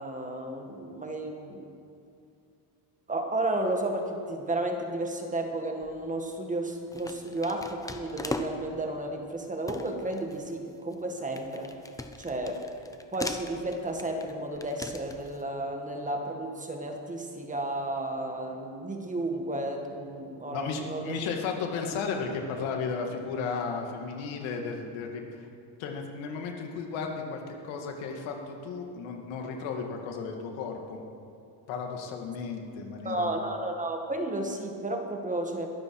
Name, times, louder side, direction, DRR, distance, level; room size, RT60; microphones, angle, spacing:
voice 1, 0.0-1.7 3.1-11.7 12.2-12.6 13.1-21.3 33.0-35.7, right 1 dB, 15° right, 3 dB, 1.7 m, -32 dB
sound 1, 5.8-6.2 6.9-8.8 9.3-9.4 9.7-15.4, left 2 dB, 5° left, 0.7 m, -40 dB
voice 2, 20.5-25.5 25.8-31.0 31.7-33.3, left 5 dB, 75° left, 2 dB, 2.4 m, -34 dB
22.5 x 13.0 x 4.9 m, 2.5 s
cardioid pair, 140°, 47 cm